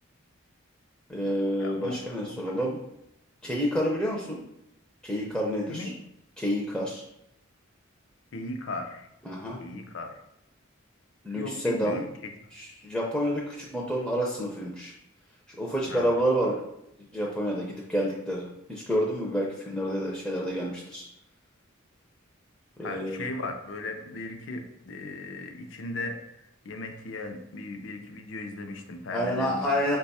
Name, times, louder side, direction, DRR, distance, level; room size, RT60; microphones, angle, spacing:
voice 1, 1.1-2.8 3.4-4.4 5.0-5.9 6.4-7.0 9.2-9.6 11.2-12.0 12.5-14.9 15.5-16.6 17.1-21.0 22.8-23.2 29.1-30.0, equal, 5° left, -4 dB, 0.5 m, -29 dB
voice 2, 1.6-1.9 2.3-2.5 5.7-5.9 8.3-9.1 9.6-10.2 11.4-12.1 15.9-16.1 22.8-26.2 26.6-29.6, left 2 dB, 60° left, 5 dB, 0.5 m, -37 dB
5.3 x 2.3 x 4.1 m, 0.82 s
head